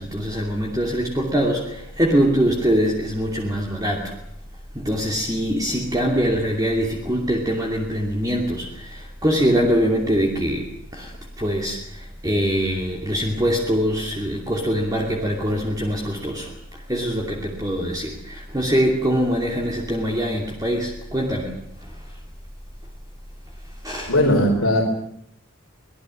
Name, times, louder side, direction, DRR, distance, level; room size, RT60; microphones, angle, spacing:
voice 1, 0.0-4.2 4.7-22.0 23.8-24.1, equal, 20° right, 0 dB, 2.7 m, -23 dB
voice 2, 24.1-24.8, left 1 dB, 85° left, 1 dB, 3.9 m, -18 dB
24.5 x 19.5 x 7.8 m, 0.70 s
head